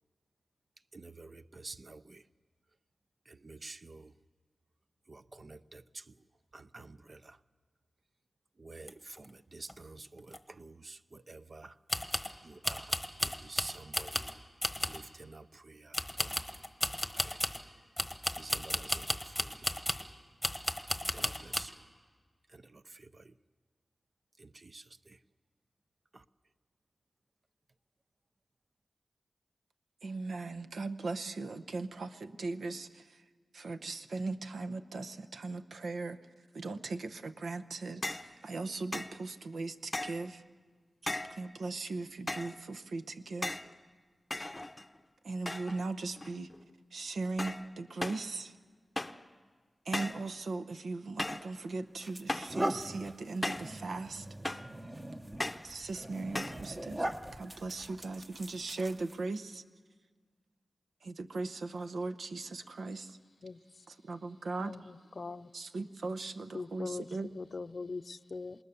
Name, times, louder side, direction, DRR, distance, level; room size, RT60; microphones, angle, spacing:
voice 1, 1.6-2.0 3.5-4.0 5.4-5.8 6.7-7.2 8.6-8.9 9.5-10.0 10.6-10.7 11.3-11.7 12.6-12.8 13.5-14.1 14.9-15.4 16.2-16.3 18.4-18.9 21.1-21.7 24.7-24.8, right 3 dB, 50° right, 12 dB, 0.6 m, -47 dB
sound 1, 8.9-9.0 9.2-9.3 9.7-9.8 10.3-10.4 11.9-12.3 12.6-14.3 14.6-15.1 15.9-17.6 18.0-20.1 20.4-21.7, left 1 dB, 5° left, 1.2 m, -34 dB
voice 2, 30.0-33.0 33.5-36.2 36.5-40.4 41.3-43.6 45.2-46.5 46.9-48.5 49.9-54.3 55.6-57.1 57.3-59.6 61.0-63.1 63.9-64.7 65.5-67.3, right 3 dB, 85° right, 10 dB, 0.8 m, -38 dB
sound 2, 38.0-38.3 38.9-39.2 39.9-40.3 41.1-41.4 42.3-42.6 43.4-43.7 44.3-45.0 45.5-45.8 46.2-46.6 47.4-47.7 48.0-48.3 49.0-49.3 49.9-50.3 51.2-51.5 52.3-52.6 53.4-53.8 54.4-54.8 55.4-55.7 56.3-56.6, left 1 dB, 20° left, 0.7 m, -37 dB
sound 3, 51.4-51.5 52.0-59.4, right 1 dB, 20° right, 1.0 m, -40 dB
voice 3, 66.5-67.0 67.4-68.6, left 4 dB, 60° left, 12 dB, 0.6 m, -40 dB
26.5 x 20.0 x 6.9 m, 1.5 s
wide cardioid pair, 65°, 0 cm